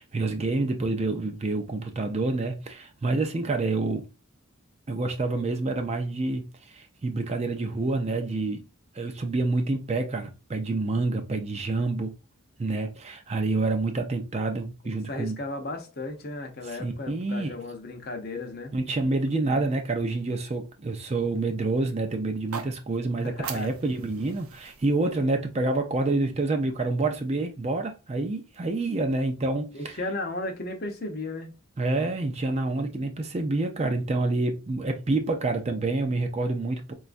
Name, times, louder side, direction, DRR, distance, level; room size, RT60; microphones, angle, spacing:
voice 1, 0.0-4.1 4.9-8.6 8.9-12.1 12.6-15.4 16.7-17.5 18.7-30.0 31.8-36.9, right 2 dB, 30° right, 0.4 m, -28 dB
voice 2, 14.8-18.7 23.2-23.7 29.7-31.5, left 2 dB, 45° left, 0.7 m, -35 dB
sound 1, 22.3-26.4, right 6 dB, 80° right, 0.5 m, -43 dB
4.1 x 2.3 x 2.5 m
head